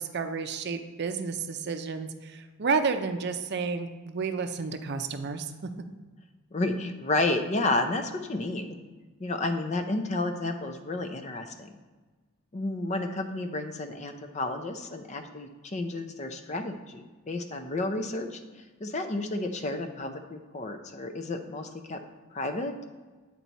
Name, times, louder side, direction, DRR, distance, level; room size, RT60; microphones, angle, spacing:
voice 1, 0.0-5.7, right 5 dB, 50° right, 8 dB, 0.5 m, -31 dB
voice 2, 6.5-8.8 9.2-11.7 12.5-18.4 18.8-22.0 22.3-22.8, left 2 dB, 35° left, 7 dB, 0.5 m, -31 dB
8.8 x 4.5 x 4.0 m, 1.3 s
head